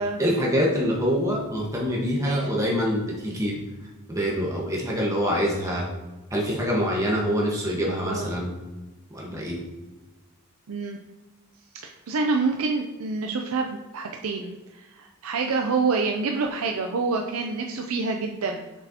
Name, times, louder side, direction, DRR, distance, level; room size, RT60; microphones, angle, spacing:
voice 1, 0.2-3.6 4.1-5.9 6.3-8.5 9.1-9.6, equal, 15° right, -3 dB, 1.3 m, -25 dB
voice 2, 7.9-8.3 10.7-11.0 11.8-18.6, right 4 dB, 80° right, 3 dB, 0.5 m, -27 dB
6.7 x 6.0 x 2.9 m, 1.2 s
head